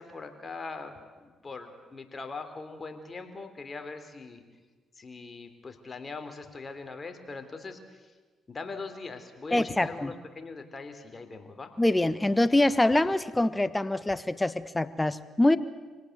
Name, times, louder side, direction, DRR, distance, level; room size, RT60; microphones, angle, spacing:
voice 1, 0.0-4.4 4.9-8.2 8.5-11.7, left 3 dB, 35° left, 6 dB, 3.5 m, -41 dB
voice 2, 9.5-10.1 11.8-15.6, left 1 dB, 15° left, 14 dB, 1.3 m, -24 dB
25.0 x 18.0 x 8.1 m, 1.3 s
supercardioid pair, 55°, 0 cm